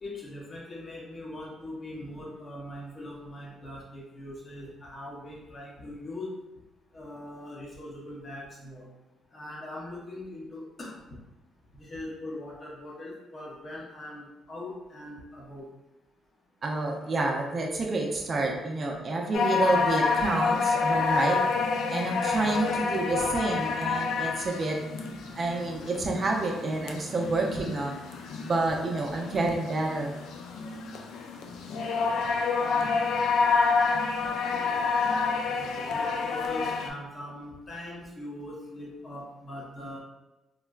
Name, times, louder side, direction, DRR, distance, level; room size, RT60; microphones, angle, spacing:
voice 1, 0.0-6.3 6.9-8.9 9.3-11.2 11.7-15.7 32.5-32.9 35.2-35.3 35.7-40.0, left 1 dB, 40° left, -4 dB, 0.8 m, -41 dB
voice 2, 16.6-24.8 25.4-28.0 28.4-30.1, right 2 dB, 40° right, 0 dB, 0.4 m, -29 dB
sound 1, 19.3-36.9, left 4 dB, 80° left, 0.3 m, -28 dB
3.8 x 2.1 x 2.3 m, 0.97 s
cardioid pair, 90°, 0 cm